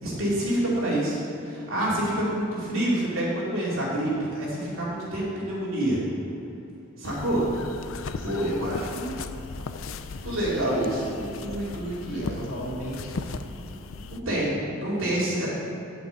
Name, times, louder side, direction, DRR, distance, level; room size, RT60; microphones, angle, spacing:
voice 1, 0.0-6.0 7.0-7.5 8.2-9.1 10.2-12.4 14.1-14.5 14.8-15.5, right 1 dB, 70° right, -7 dB, 2.7 m, -27 dB
sound 1, 7.0-14.2, left 4 dB, 70° left, 0.5 m, -37 dB
voice 2, 8.2-8.5 12.0-13.6 14.0-14.7, left 1 dB, 85° left, -3 dB, 2.1 m, -38 dB
8.7 x 6.0 x 8.1 m, 2.9 s
head